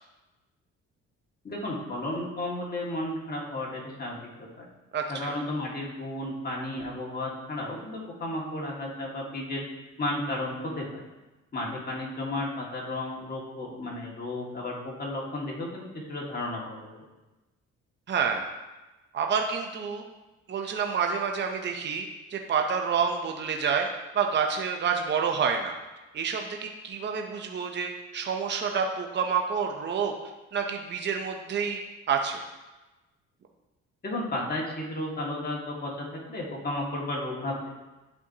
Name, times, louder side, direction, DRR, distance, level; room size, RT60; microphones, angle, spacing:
voice 1, 1.4-4.7 5.1-9.6 10.0-11.0 11.5-17.0 34.0-37.7, left 1 dB, 30° left, -3 dB, 1.9 m, -33 dB
voice 2, 4.9-5.4 18.1-18.5 19.1-20.0 20.5-23.9 24.1-25.8 26.1-30.1 30.5-31.8 32.1-32.4, right 6 dB, 35° right, 3 dB, 0.7 m, -28 dB
11.0 x 4.5 x 2.8 m, 1.1 s
cardioid pair, 90°, 30 cm